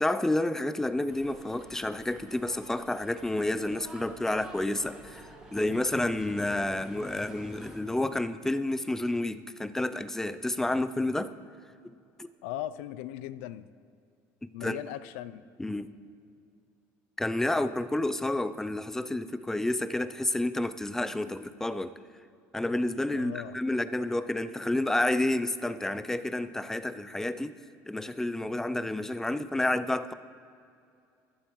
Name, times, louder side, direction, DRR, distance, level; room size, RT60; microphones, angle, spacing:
voice 1, 0.0-5.2 5.5-11.3 12.2-12.3 14.6-14.8 15.6-15.9 17.2-21.9 22.5-27.5 27.9-30.1, left 1 dB, 5° left, 0.4 m, -30 dB
sound 1, 1.1-7.8, right 1 dB, 10° right, 2.7 m, -50 dB
voice 2, 12.4-13.7 14.5-15.4 23.1-23.6, left 12 dB, 90° left, 0.4 m, -38 dB
14.5 x 11.5 x 3.1 m
cardioid pair, 115°, 7 cm